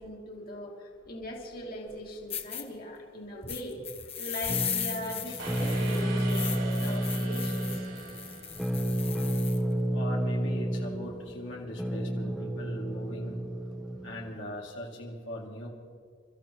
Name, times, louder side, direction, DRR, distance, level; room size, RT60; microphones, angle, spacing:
voice 1, 0.0-7.8, equal, 50° left, -2 dB, 2.6 m, -40 dB
sound 1, 1.9-2.0 2.3-2.6 3.5-9.6, left 8 dB, 30° left, 1.3 m, -37 dB
sound 2, 4.5-14.4, right 1 dB, ahead, 0.8 m, -31 dB
sound 3, 5.4-9.2, right 4 dB, 80° right, 4.7 m, -42 dB
voice 2, 9.9-13.4 14.0-15.7, equal, 75° left, -3 dB, 2.4 m, -40 dB
28.5 x 14.5 x 3.1 m, 2.2 s
head